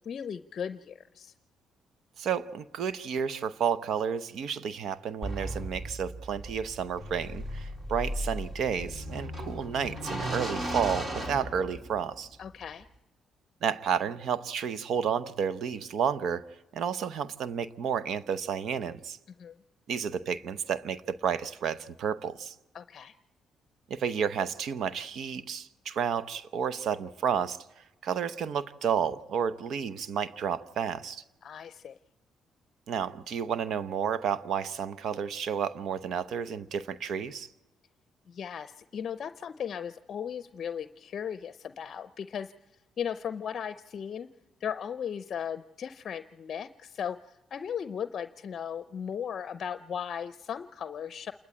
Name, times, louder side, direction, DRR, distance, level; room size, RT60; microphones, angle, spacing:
voice 1, 0.0-1.3 12.4-12.9 19.4-19.6 22.7-23.1 31.4-32.0 38.3-42.5 43.0-44.3 44.6-51.3, left 8 dB, 55° left, 0.6 m, -37 dB
voice 2, 2.2-12.3 13.6-16.4 16.7-19.2 19.9-22.5 23.9-27.6 28.0-31.2 32.9-37.5, right 7 dB, 70° right, 0.7 m, -31 dB
sound 1, 5.2-12.1, right 1 dB, 35° right, 4.1 m, -36 dB
28.0 x 12.5 x 8.9 m
cardioid pair, 90°, 0 cm